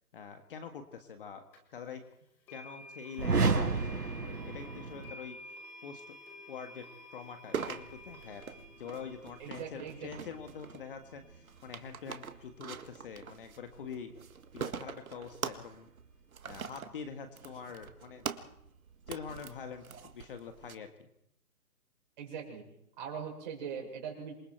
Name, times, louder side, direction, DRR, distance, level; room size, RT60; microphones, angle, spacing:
voice 1, 0.1-1.4 1.7-2.0 2.5-5.4 5.8-6.2 6.5-6.9 7.1-8.5 8.8-14.1 14.5-15.9 16.4-18.3 19.1-19.9 20.1-21.1, left 6 dB, 35° left, 7 dB, 1.7 m, -45 dB
sound 1, 1.5-1.6 2.5-13.5, left 1 dB, 5° left, 0.8 m, -53 dB
sound 2, 3.2-5.2, right 4 dB, 75° right, 4.9 m, -30 dB
sound 3, 7.5-20.7, right 7 dB, 60° right, 1.9 m, -44 dB
voice 2, 9.4-10.3 22.2-22.6 23.0-24.4, right 7 dB, 30° right, 1 dB, 6.9 m, -41 dB
27.0 x 23.5 x 4.6 m, 0.76 s
hypercardioid pair, 155°, 47 cm